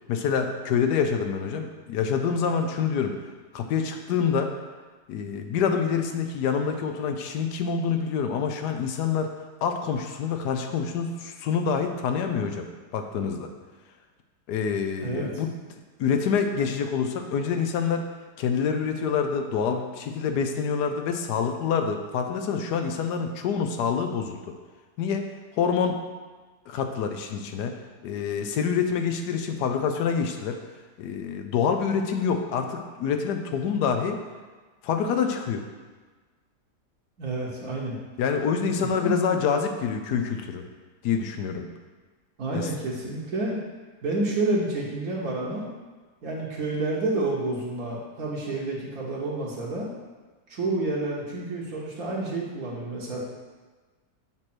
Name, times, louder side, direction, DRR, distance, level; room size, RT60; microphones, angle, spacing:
voice 1, 0.1-3.1 3.5-4.5 5.1-9.3 9.6-13.5 14.5-15.5 16.0-18.0 18.4-24.4 25.0-25.2 25.6-26.0 26.7-30.6 31.0-34.2 34.8-35.6 38.2-40.6 41.0-41.6 42.5-42.7, left 6 dB, 80° left, 6 dB, 1.2 m, -26 dB
voice 2, 15.0-15.3 37.2-38.0 38.7-39.1 42.4-43.6 44.0-45.7 46.2-49.9 50.5-53.2, right 2 dB, 60° right, -4 dB, 1.5 m, -29 dB
7.4 x 3.2 x 6.0 m, 1.4 s
omnidirectional pair, 1.8 m